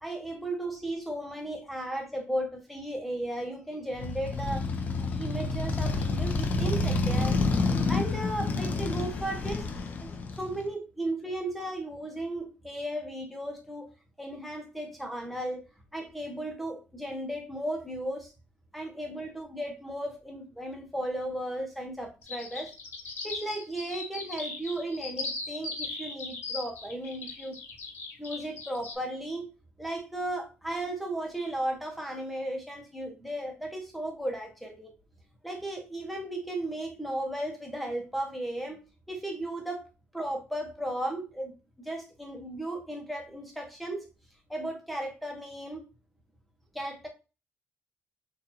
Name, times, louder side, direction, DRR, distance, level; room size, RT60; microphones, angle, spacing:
voice 1, 0.0-7.4 7.9-9.7 10.0-13.9 14.2-15.6 15.9-18.3 18.7-22.7 23.2-27.5 28.2-29.5 29.8-34.9 35.4-38.8 39.1-39.9 40.1-44.1 44.5-45.8 46.7-47.1, right 1 dB, ahead, 1.0 m, -35 dB
Motorcycle, 3.9-10.6, left 3 dB, 40° left, 0.6 m, -29 dB
sound 1, 22.2-28.9, left 3 dB, 60° left, 1.3 m, -38 dB
6.4 x 2.7 x 2.8 m
cardioid pair, 175°, 4 cm